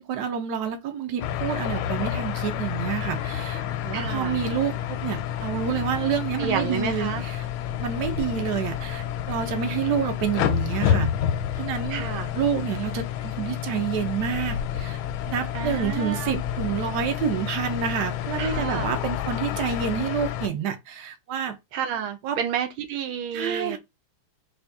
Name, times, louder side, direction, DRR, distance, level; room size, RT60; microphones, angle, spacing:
voice 1, 0.0-7.5 7.8-11.1 11.6-12.0 12.3-15.0 15.2-21.6 22.2-22.4 23.3-23.8, right 8 dB, 60° right, 1.3 m, -28 dB
sound 1, 1.2-20.5, left 10 dB, 85° left, 1.5 m, -29 dB
voice 2, 3.9-4.4 6.4-7.2 11.9-12.3 15.5-16.4 18.4-18.9 21.7-23.8, right 8 dB, 80° right, 1.5 m, -30 dB
4.2 x 2.5 x 3.5 m
omnidirectional pair, 2.3 m